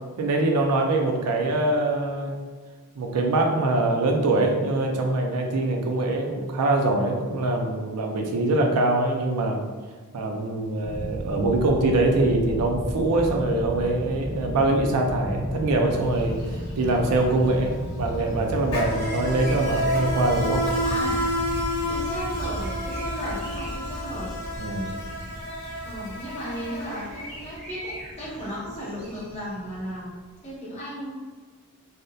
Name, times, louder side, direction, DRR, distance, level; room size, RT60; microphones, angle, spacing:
voice 1, 0.2-2.4 3.0-9.6 10.1-16.4 16.8-20.6 24.6-24.9, right 2 dB, 90° right, 2 dB, 0.4 m, -23 dB
sound 1, 10.8-30.0, equal, 25° right, 0.9 m, -35 dB
Insect, 16.0-16.2 16.5-27.5, equal, 85° left, 1.0 m, -30 dB
sound 2, 18.9-30.5, right 1 dB, 70° right, 0.9 m, -45 dB
voice 2, 20.8-24.4 25.8-31.1, equal, 30° left, -7 dB, 0.7 m, -35 dB
2.6 x 2.0 x 2.2 m, 1.5 s
head